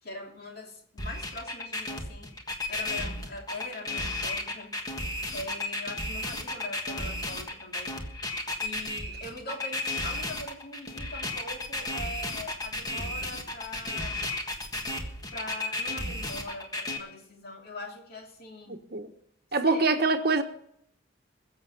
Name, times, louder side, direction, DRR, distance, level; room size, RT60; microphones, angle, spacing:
voice 1, 0.0-2.3 2.7-4.7 5.3-8.0 8.6-14.2 15.3-18.8 19.6-20.0, left 2 dB, 50° left, 2.7 m, -42 dB
sound 1, 1.0-17.0, left 2 dB, 20° left, 1.5 m, -33 dB
voice 2, 18.7-19.1 19.5-20.4, right 3 dB, 50° right, 1.2 m, -25 dB
22.0 x 7.4 x 5.6 m
head